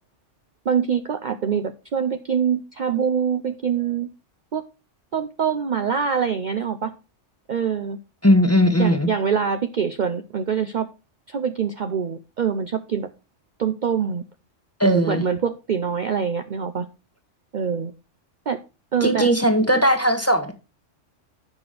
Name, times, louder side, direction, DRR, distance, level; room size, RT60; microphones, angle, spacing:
voice 1, 0.7-4.1 4.5-4.6 5.1-6.9 7.5-8.0 8.8-10.9 11.3-13.1 13.6-14.2 14.8-16.9 17.5-17.9 18.5-18.6 18.9-19.3, right 7 dB, 50° right, 8 dB, 0.6 m, -24 dB
voice 2, 8.2-9.1 14.8-15.2 19.0-20.5, equal, 15° left, 7 dB, 1.0 m, -18 dB
8.7 x 6.0 x 5.0 m, 0.31 s
omnidirectional pair, 1.3 m